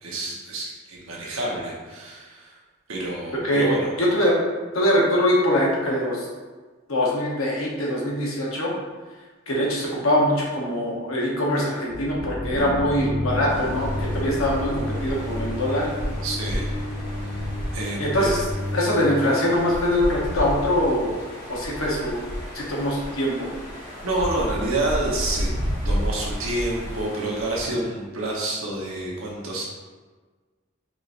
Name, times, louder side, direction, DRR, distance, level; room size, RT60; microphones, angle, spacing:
voice 1, 0.0-2.6 2.9-3.9 16.2-16.7 17.3-17.4 17.7-18.3 24.0-25.5 25.8-29.6, right 2 dB, 80° right, -4 dB, 1.0 m, -28 dB
voice 2, 4.0-4.4 4.7-6.3 6.9-8.7 9.5-15.9 18.0-18.4 18.7-21.1 21.5-22.2 22.5-23.5, left 1 dB, 90° left, -3 dB, 1.0 m, -23 dB
sound 1, 11.9-19.7, left 1 dB, 70° left, 0.6 m, -31 dB
Park Walk, 13.5-27.6, equal, 25° left, 1.2 m, -32 dB
4.6 x 3.0 x 2.5 m, 1.4 s
head